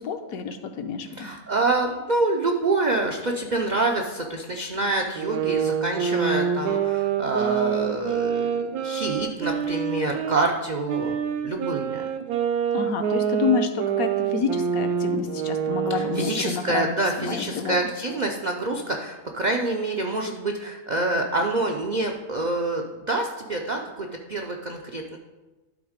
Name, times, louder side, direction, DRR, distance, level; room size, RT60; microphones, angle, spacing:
voice 1, 0.0-1.3 12.7-17.8, left 6 dB, 70° left, 7 dB, 1.1 m, -29 dB
voice 2, 1.1-12.1 15.9-25.2, right 2 dB, 60° right, 2 dB, 0.4 m, -27 dB
sound 1, 5.2-10.4 10.9-16.5, right 7 dB, 80° right, 1.2 m, -26 dB
11.5 x 3.9 x 5.0 m, 1.2 s
omnidirectional pair, 1.6 m